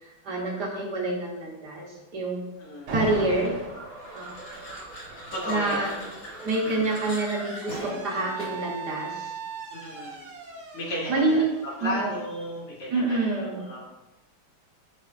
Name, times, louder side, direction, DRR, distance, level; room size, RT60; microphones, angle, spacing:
voice 1, 0.0-2.4 2.9-3.5 4.1-4.3 5.5-5.9 6.4-9.4 11.1-11.5 11.8-12.1 12.9-13.6, right 2 dB, 55° right, -2 dB, 1.4 m, -27 dB
voice 2, 2.6-2.9 5.3-5.9 6.6-6.8 9.7-10.3 10.7-13.8, left 1 dB, 80° left, -6 dB, 2.7 m, -34 dB
Alarm, 2.9-3.8 5.1-12.8, right 3 dB, 80° right, 2.0 m, -39 dB
sound 1, 3.4-8.8, right 1 dB, 65° left, 2.2 m, -40 dB
10.5 x 3.6 x 2.5 m, 1.0 s
omnidirectional pair, 2.4 m